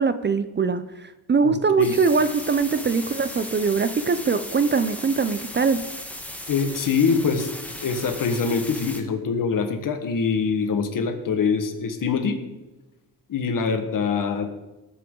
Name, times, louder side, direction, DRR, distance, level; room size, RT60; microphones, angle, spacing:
voice 1, 0.0-5.8, right 5 dB, 30° right, 12 dB, 0.5 m, -22 dB
voice 2, 1.4-1.9 6.5-7.5 7.8-12.4 13.3-14.5, left 5 dB, 55° left, 7 dB, 1.5 m, -24 dB
sound 1, 1.8-9.0, left 1 dB, 5° left, 1.3 m, -37 dB
19.0 x 8.5 x 3.8 m, 1.1 s
wide cardioid pair, 150°, 38 cm